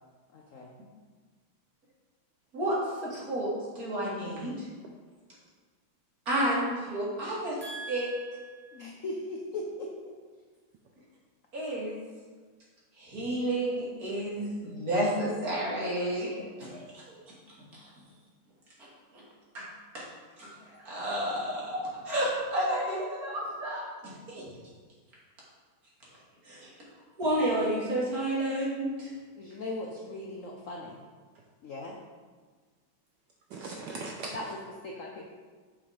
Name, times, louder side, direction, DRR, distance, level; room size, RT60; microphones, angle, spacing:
voice 1, 0.3-0.7 8.7-10.1 29.4-31.0 31.6-32.0 34.3-35.2, left 2 dB, 65° left, 0 dB, 0.8 m, -39 dB
voice 2, 2.5-4.7 6.3-7.6 7.9-8.1 11.5-11.9 13.0-17.1 17.7-17.9 19.1-19.2 19.5-19.7 19.9-20.0 20.4-24.4 26.4-26.7 27.2-29.1, right 1 dB, 45° right, -6 dB, 2.7 m, -31 dB
voice 3, 7.6-8.8 33.5-34.4, right 3 dB, 70° right, 1 dB, 1.2 m, -40 dB
6.9 x 5.5 x 5.0 m, 1.5 s
omnidirectional pair, 2.2 m